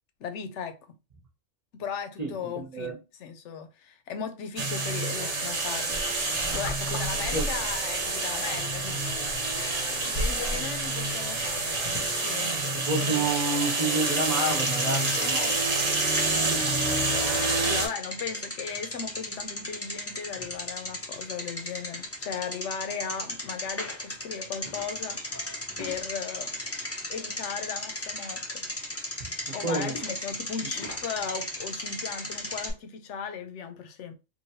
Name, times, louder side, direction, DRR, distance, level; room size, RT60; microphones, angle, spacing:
voice 1, 0.2-0.8 1.7-6.0 6.5-11.8 12.2-13.3 16.4-25.2 25.8-26.5 27.1-28.7 29.5-34.1, left 6 dB, 75° left, 0.9 m, -37 dB
voice 2, 2.2-3.0 7.3-7.5 12.7-15.6 29.2-29.9, right 2 dB, 35° right, 0.9 m, -30 dB
sound 1, 4.6-17.9, right 3 dB, 70° right, 1.3 m, -28 dB
sound 2, 5.9-12.2, left 1 dB, 50° left, 0.8 m, -37 dB
Bicycle, 14.4-32.7, left 1 dB, 20° left, 0.3 m, -36 dB
3.0 x 2.5 x 2.7 m
omnidirectional pair, 1.3 m